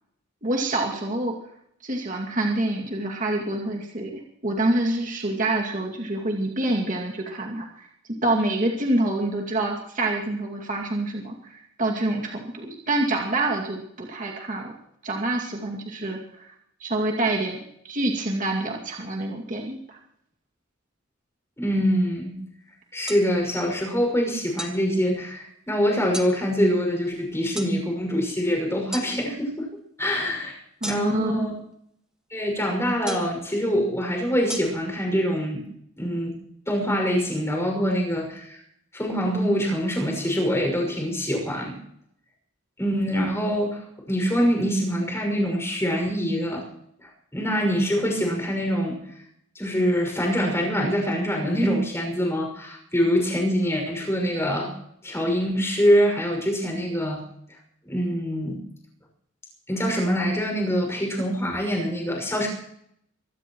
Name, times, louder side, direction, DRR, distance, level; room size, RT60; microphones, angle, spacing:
voice 1, 0.4-1.3 1.8-7.9 8.2-14.7 15.0-16.5 16.8-17.6 17.8-20.0 30.8-31.5, right 2 dB, 40° right, 0 dB, 2.4 m, -26 dB
voice 2, 21.6-22.4 22.9-29.7 30.0-30.6 30.9-31.5 32.3-35.7 36.0-36.3 36.7-38.6 38.9-41.8 42.8-46.7 47.0-49.0 49.5-54.7 55.0-57.2 57.8-58.6 59.7-62.5, equal, 15° left, 1 dB, 6.1 m, -24 dB
sound 1, 23.1-23.2 24.6-24.8 26.1-26.3 27.6-27.7 28.9-29.1 30.8-31.3 33.1-33.4 34.5-34.6, equal, 5° right, 1.7 m, -33 dB
24.0 x 17.0 x 3.1 m, 0.70 s
head